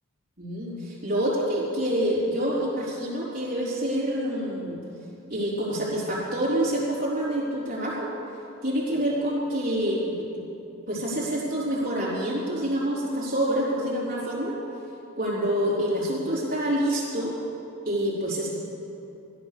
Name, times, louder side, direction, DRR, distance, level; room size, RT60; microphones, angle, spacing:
voice 1, 0.4-4.8 5.3-8.1 8.6-10.4 10.9-14.6 15.2-17.3 17.9-18.5, right 1 dB, 40° right, -7 dB, 4.1 m, -27 dB
16.5 x 12.0 x 6.7 m, 2.8 s
head